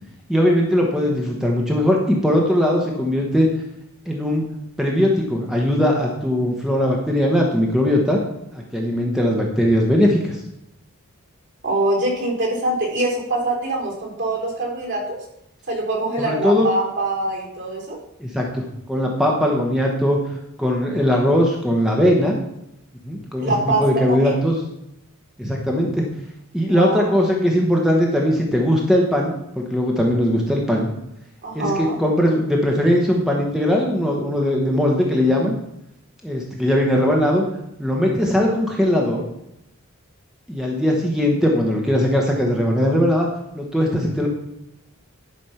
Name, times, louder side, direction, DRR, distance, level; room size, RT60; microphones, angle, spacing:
voice 1, 0.3-3.5 4.0-4.4 4.8-8.2 8.5-10.4 16.2-16.7 18.2-22.4 23.0-24.6 25.4-26.1 26.5-30.9 31.5-35.5 36.2-37.4 37.8-39.2 40.5-43.3 43.5-44.3, equal, ahead, -1 dB, 1.1 m, -19 dB
voice 2, 11.6-15.2 15.7-18.0 23.4-24.3 26.7-27.0 31.4-32.0, right 2 dB, 55° right, -2 dB, 3.5 m, -24 dB
11.0 x 5.3 x 5.7 m, 0.82 s
head